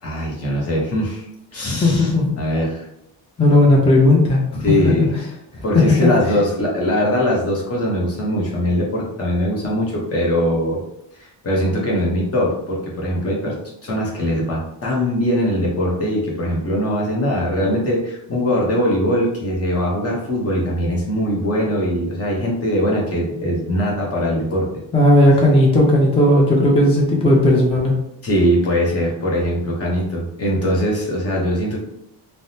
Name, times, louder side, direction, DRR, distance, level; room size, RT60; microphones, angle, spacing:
voice 1, 0.0-2.9 4.6-5.1 5.6-10.8 11.2-13.6 13.8-24.7 28.2-31.8, equal, 30° left, -3 dB, 0.8 m, -21 dB
voice 2, 1.6-2.3 3.4-5.1 6.2-6.3 24.9-27.9, left 1 dB, 15° left, -2 dB, 0.4 m, -15 dB
3.4 x 2.0 x 2.7 m, 0.79 s
wide cardioid pair, 160°, 45 cm